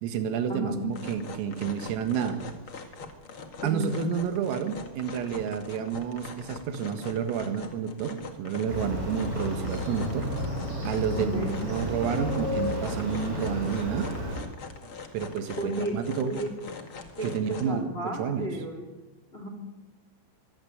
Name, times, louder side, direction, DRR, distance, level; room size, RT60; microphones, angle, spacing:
voice 1, 0.0-2.4 3.6-10.3 10.8-14.1 15.1-16.3 17.2-17.9 18.2-18.5, right 7 dB, 90° right, 8 dB, 4.5 m, -30 dB
sound 1, 0.8-17.8, left 4 dB, 75° left, 1.2 m, -43 dB
voice 2, 3.6-3.9 11.1-11.5 15.6-16.5 17.2-18.9 19.3-19.5, right 1 dB, 15° left, 3 dB, 3.6 m, -33 dB
Motorcycle, 8.7-14.4, left 1 dB, 25° right, 8.7 m, -32 dB
24.5 x 15.0 x 9.6 m, 1.1 s
omnidirectional pair, 5.8 m